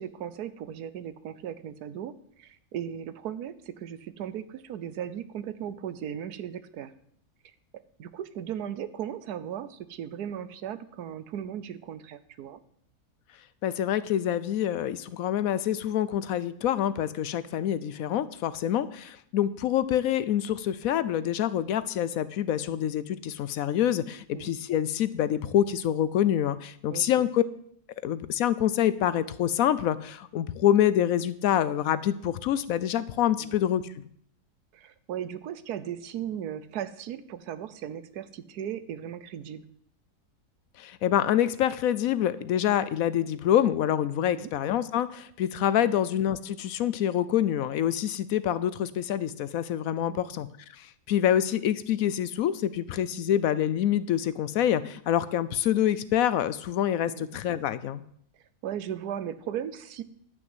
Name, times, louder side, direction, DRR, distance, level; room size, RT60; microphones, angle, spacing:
voice 1, 0.0-2.1 2.4-6.9 8.0-12.6 24.3-24.5 26.9-27.3 33.4-33.5 34.7-39.7 44.2-44.5 45.8-46.0 50.0-50.3 57.1-57.2 58.6-60.0, right 9 dB, 85° right, 14 dB, 1.3 m, -37 dB
voice 2, 13.6-27.4 28.0-33.8 40.8-50.5 50.8-58.0, left 10 dB, 70° left, 16 dB, 0.9 m, -26 dB
10.5 x 6.2 x 7.8 m, 0.67 s
omnidirectional pair, 1.6 m